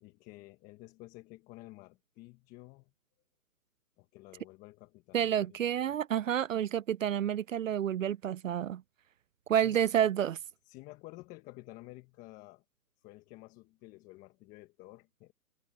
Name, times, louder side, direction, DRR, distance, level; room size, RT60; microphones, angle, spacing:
voice 1, 0.0-2.9 4.0-6.0 9.5-9.9 10.6-12.6 13.0-15.3, left 20 dB, 15° left, 1.3 m, -52 dB
voice 2, 5.1-8.8 9.5-10.4, right 10 dB, 55° right, 0.6 m, -29 dB
hypercardioid pair, 145°, 48 cm